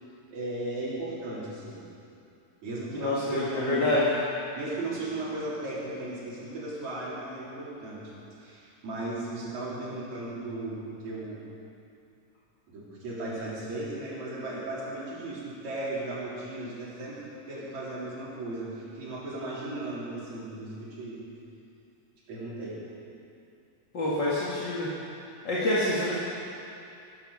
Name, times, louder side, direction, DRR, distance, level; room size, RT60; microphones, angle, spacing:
voice 1, 0.3-1.9 2.6-3.9 4.6-8.0 8.4-11.5 12.7-17.2 17.5-21.2 22.3-22.8, right 2 dB, 55° right, -7 dB, 4.9 m, -36 dB
voice 2, 2.9-4.1 23.9-24.9 25.4-26.2, left 2 dB, 40° left, -7 dB, 2.0 m, -27 dB
15.0 x 13.0 x 6.6 m, 2.6 s
omnidirectional pair, 4.0 m